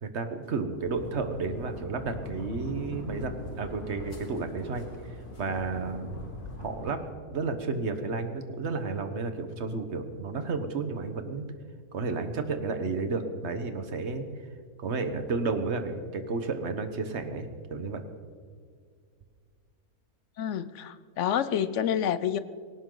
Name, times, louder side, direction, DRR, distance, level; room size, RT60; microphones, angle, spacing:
voice 1, 0.0-6.2 6.6-7.0 7.3-11.4 11.9-14.3 14.8-18.1, right 4 dB, 50° right, 8 dB, 1.4 m, -32 dB
sound 1, 0.8-7.0, left 1 dB, 80° left, 3.0 m, -41 dB
voice 2, 20.4-22.4, left 9 dB, 60° left, 14 dB, 0.9 m, -28 dB
19.0 x 17.5 x 3.9 m, 2.1 s
omnidirectional pair, 1.5 m